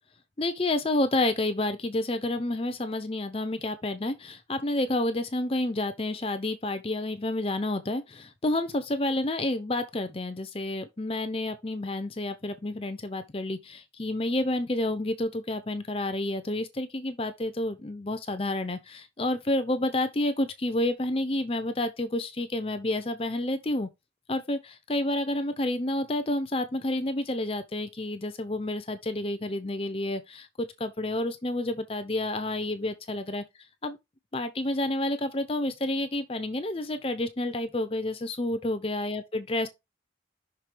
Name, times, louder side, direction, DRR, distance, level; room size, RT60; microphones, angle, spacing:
voice 1, 0.4-23.9 24.3-33.4 33.8-34.0 34.3-39.7, left 1 dB, 30° left, 0.7 m, -29 dB
6.1 x 3.9 x 5.0 m
head